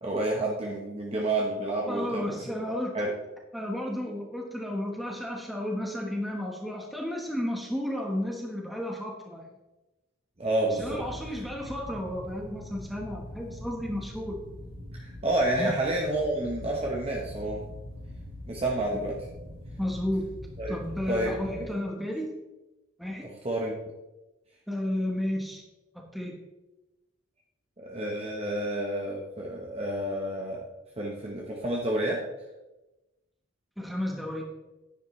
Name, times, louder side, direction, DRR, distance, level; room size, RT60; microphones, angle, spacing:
voice 1, 0.0-2.4 2.9-3.1 10.4-11.0 14.9-17.7 18.5-19.1 20.6-20.8 21.1-21.7 23.2-23.8 27.8-30.6 31.0-32.2, right 1 dB, 30° right, -2 dB, 1.1 m, -29 dB
voice 2, 1.9-2.9 3.5-9.5 10.7-14.4 15.6-15.7 19.8-20.3 20.7-22.3 23.0-23.3 24.7-25.6 25.9-26.4 33.8-34.4, left 1 dB, ahead, -1 dB, 1.2 m, -32 dB
sound 1, 10.7-21.6, left 1 dB, 75° right, 2.8 m, -43 dB
10.0 x 10.0 x 3.2 m, 1.0 s
head